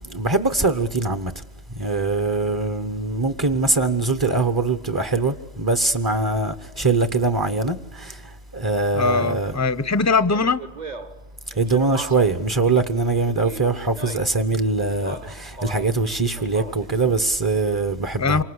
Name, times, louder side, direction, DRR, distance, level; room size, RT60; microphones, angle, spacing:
voice 1, 0.0-1.4 1.7-9.6 11.6-18.4, right 3 dB, 20° right, 1.0 m, -22 dB
voice 2, 8.9-10.6 18.2-18.4, left 4 dB, 15° left, 0.8 m, -21 dB
Speech, 10.3-12.4 13.2-14.4 14.9-16.0 16.4-17.0, right 3 dB, 40° right, 1.4 m, -38 dB
28.0 x 25.0 x 8.0 m
omnidirectional pair, 1.2 m